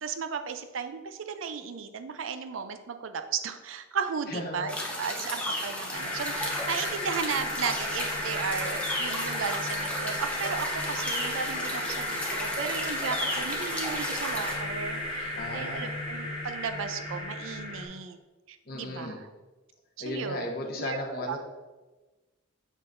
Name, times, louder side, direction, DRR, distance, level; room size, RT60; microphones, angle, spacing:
voice 1, 0.0-18.2 18.5-19.3 20.0-20.4 20.8-21.0 21.3-21.4, right 6 dB, 70° right, 9 dB, 0.5 m, -35 dB
voice 2, 4.3-4.8 15.4-15.9 18.7-19.2 20.0-21.4, left 1 dB, 45° left, 1 dB, 1.0 m, -35 dB
sound 1, 4.7-14.6, left 1 dB, 5° left, 0.8 m, -34 dB
sound 2, 5.9-17.9, left 1 dB, 25° left, 1.3 m, -34 dB
7.1 x 5.7 x 2.6 m, 1.2 s
head